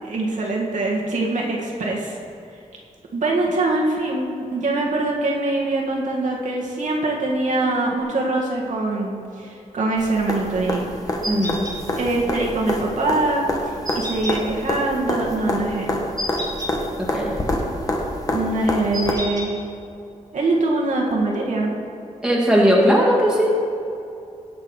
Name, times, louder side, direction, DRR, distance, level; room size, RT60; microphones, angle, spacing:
voice 1, 0.0-2.2 3.1-10.9 12.0-16.0 18.3-19.6 20.3-21.7, right 2 dB, 70° right, -2 dB, 1.8 m, -23 dB
sound 1, 10.0-19.1 21.1-21.2, left 1 dB, 25° left, 1.2 m, -27 dB
sound 2, 11.2-11.8 13.8-14.4 16.2-16.7 18.9-19.5, equal, 30° right, 2.0 m, -29 dB
voice 2, 11.3-11.6 17.1-17.3 22.2-23.6, equal, 5° right, -3 dB, 1.9 m, -18 dB
17.5 x 6.1 x 4.8 m, 2.7 s
wide cardioid pair, 150°, 13 cm